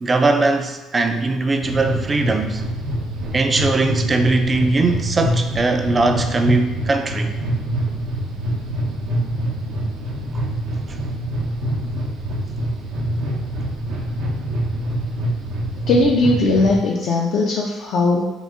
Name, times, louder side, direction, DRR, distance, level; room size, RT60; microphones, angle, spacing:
voice 1, 0.0-2.6 3.3-7.3 10.3-10.4 13.1-13.3, right 3 dB, 25° right, 6 dB, 0.3 m, -20 dB
sound 1, 1.6-16.8, right 1 dB, 85° right, 0.6 m, -25 dB
voice 2, 15.9-18.3, left 2 dB, 60° left, -2 dB, 0.4 m, -18 dB
3.7 x 2.0 x 3.5 m, 1.1 s
cardioid pair, 115°, 0 cm